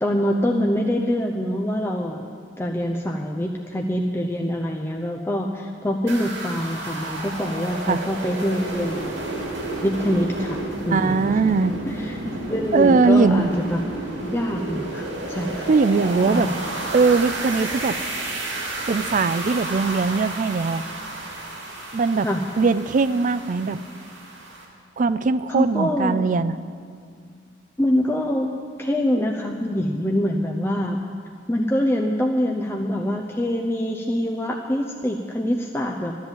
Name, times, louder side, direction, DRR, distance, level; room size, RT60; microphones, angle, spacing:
voice 1, 0.0-2.3 2.6-9.1 9.8-11.5 11.8-12.2 12.5-13.8 14.2-15.7 16.3-16.5 22.2-22.4 25.5-26.2 27.8-28.5 28.8-31.0 31.5-36.2, equal, 15° left, 1 dB, 0.6 m, -24 dB
sound 1, 6.1-24.6, right 2 dB, 85° right, 2.7 m, -31 dB
voice 2, 10.9-11.7 12.7-13.5 15.7-16.5 16.9-17.9 18.9-20.8 21.9-22.3 22.6-23.8 25.0-26.6, right 4 dB, 45° right, 14 dB, 0.4 m, -20 dB
13.0 x 10.5 x 7.3 m, 2.1 s
head